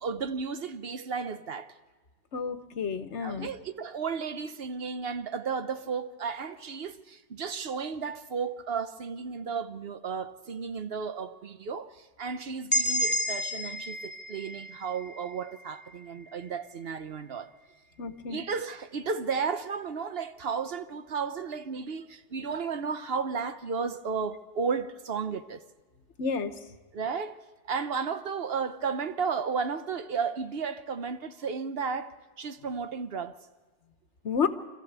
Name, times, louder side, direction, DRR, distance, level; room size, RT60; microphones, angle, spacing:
voice 1, 0.0-1.7 3.2-17.5 18.3-25.6 26.9-27.4 27.7-33.4, right 5 dB, 60° right, 1.1 m, -33 dB
voice 2, 2.3-3.5 18.0-18.4 26.2-26.5 34.2-34.5, left 6 dB, 80° left, 1.4 m, -30 dB
sound 1, 12.7-16.5, equal, 10° left, 2.3 m, -32 dB
25.5 x 14.0 x 8.1 m
omnidirectional pair, 1.2 m